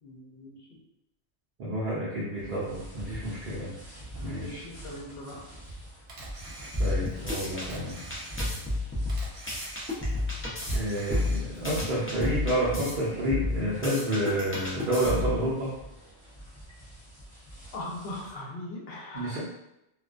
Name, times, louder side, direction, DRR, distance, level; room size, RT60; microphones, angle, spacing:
voice 1, 0.0-0.6 4.2-5.4 17.7-19.4, left 1 dB, 65° left, -3 dB, 0.9 m, -39 dB
voice 2, 1.6-3.7 4.2-4.6 6.8-8.0 10.7-15.7 19.1-19.4, right 1 dB, 55° right, -7 dB, 0.7 m, -29 dB
sound 1, 2.4-18.4, right 1 dB, 20° right, 0.8 m, -44 dB
Camera, 6.1-7.2 7.6-8.8 9.1-10.2 10.6-11.7, right 2 dB, 80° right, 1.0 m, -46 dB
sound 2, 6.7-7.7 8.1-10.7 11.1-12.9 13.3-15.4, left 2 dB, 20° left, 0.3 m, -30 dB
2.4 x 2.1 x 2.4 m, 0.87 s
omnidirectional pair, 1.1 m